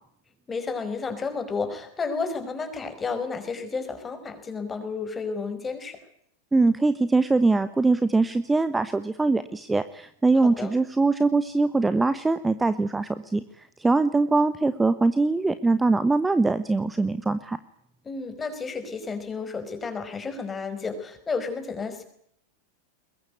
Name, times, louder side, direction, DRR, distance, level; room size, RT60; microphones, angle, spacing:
voice 1, 0.5-6.0 10.4-10.8 18.0-22.0, left 4 dB, 15° left, 8 dB, 5.3 m, -32 dB
voice 2, 6.5-17.6, right 3 dB, 10° right, 13 dB, 1.1 m, -22 dB
22.5 x 22.0 x 9.4 m, 0.70 s
figure-of-eight pair, 90°, 0 cm